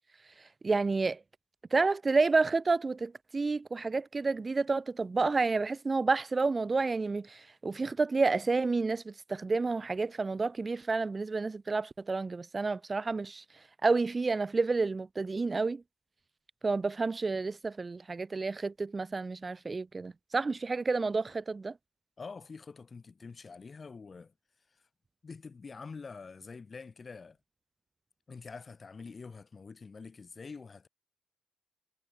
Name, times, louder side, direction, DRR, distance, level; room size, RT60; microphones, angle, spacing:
voice 1, 0.6-1.2 1.7-13.4 13.8-15.8 16.6-21.7, right 3 dB, 35° right, 0.5 m, -30 dB
voice 2, 22.2-24.3 24.7-24.8 25.2-27.4 28.3-30.9, left 4 dB, 45° left, 7.1 m, -46 dB
supercardioid pair, 50°, 0 cm